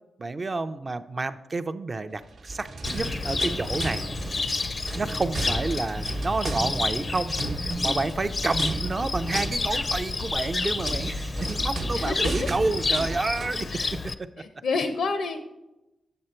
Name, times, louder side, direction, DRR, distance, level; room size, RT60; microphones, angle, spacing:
voice 1, 0.2-4.0 5.0-14.3, right 3 dB, 30° right, 11 dB, 0.4 m, -30 dB
sound 1, 2.3-13.7, right 2 dB, 65° right, 0.8 m, -34 dB
Cricket, 2.8-14.1, left 3 dB, 35° left, 0.4 m, -30 dB
voice 2, 11.9-12.5 13.7-13.9 14.4-15.4, left 4 dB, 90° left, 7 dB, 0.6 m, -29 dB
7.7 x 7.4 x 4.3 m, 0.97 s
wide cardioid pair, 125°, 0 cm